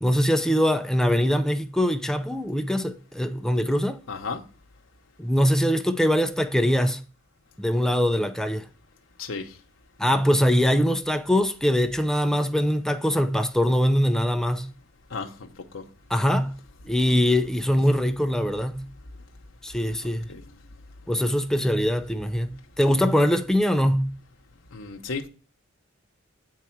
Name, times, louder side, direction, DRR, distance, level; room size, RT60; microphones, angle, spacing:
voice 1, 0.0-4.0 5.2-7.0 7.6-8.7 10.0-14.7 16.1-16.6 16.9-18.9 19.6-20.3 21.1-24.1, equal, 5° left, 0.5 m, -22 dB
voice 2, 4.1-4.4 9.2-9.5 15.1-15.5 15.7-15.8 20.3-20.4 24.7-25.3, left 4 dB, 80° left, 0.9 m, -33 dB
8.4 x 4.7 x 4.5 m
head